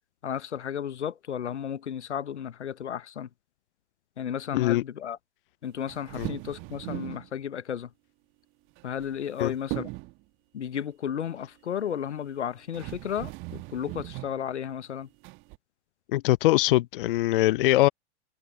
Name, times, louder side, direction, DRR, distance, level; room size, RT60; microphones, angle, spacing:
voice 1, 0.2-3.3 4.2-5.2 5.6-7.9 8.8-9.9 10.5-15.1, left 9 dB, 70° left, 1.1 m, -33 dB
sound 1, 5.9-7.3 8.8-9.4 9.7-10.2 12.2-12.3 12.7-14.4 15.2-15.6, right 25 dB, 35° right, 2.0 m, -38 dB
voice 2, 16.1-17.9, left 16 dB, 45° left, 0.8 m, -22 dB
figure-of-eight pair, 105°, 36 cm